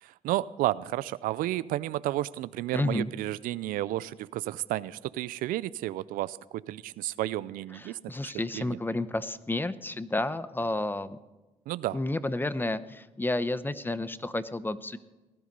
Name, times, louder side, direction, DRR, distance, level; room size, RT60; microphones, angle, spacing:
voice 1, 0.0-6.4 6.7-8.8 11.7-12.0, right 15 dB, 90° right, 18 dB, 0.4 m, -32 dB
voice 2, 2.7-3.1 7.7-11.2 11.9-15.0, left 2 dB, 15° left, 14 dB, 0.8 m, -31 dB
18.5 x 11.5 x 5.4 m, 1.1 s
cardioid pair, 75°, 14 cm